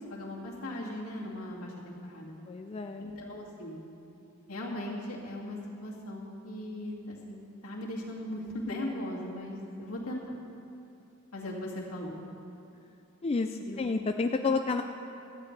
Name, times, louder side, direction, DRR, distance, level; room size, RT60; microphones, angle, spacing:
voice 1, 0.1-2.4 3.0-3.8 4.5-10.2 11.3-12.2 13.6-13.8, left 1 dB, 70° left, -3 dB, 2.3 m, -38 dB
voice 2, 2.5-3.0 13.2-14.8, left 4 dB, 25° left, 5 dB, 0.3 m, -30 dB
17.5 x 13.0 x 3.3 m, 2.7 s
head